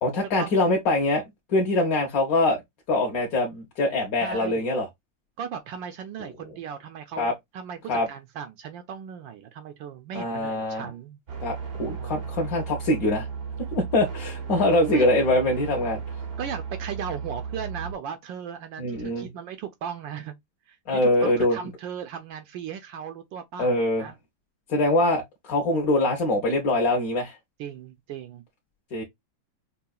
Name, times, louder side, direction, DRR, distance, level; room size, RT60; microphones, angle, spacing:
voice 1, 0.0-1.2 1.5-2.6 2.9-4.9 7.2-7.3 7.9-8.1 10.1-10.8 11.4-13.3 13.7-16.0 18.8-19.3 20.9-21.6 23.6-24.1 24.7-27.4 28.9-29.0, left 2 dB, 55° left, 1.1 m, -23 dB
voice 2, 4.2-4.7 5.4-11.2 11.9-12.1 14.8-15.1 16.4-20.3 20.7-24.2 27.6-28.4, right 7 dB, 75° right, 1.2 m, -37 dB
sound 1, 11.3-17.9, right 6 dB, 55° right, 0.7 m, -35 dB
5.5 x 2.4 x 2.3 m
omnidirectional pair, 2.2 m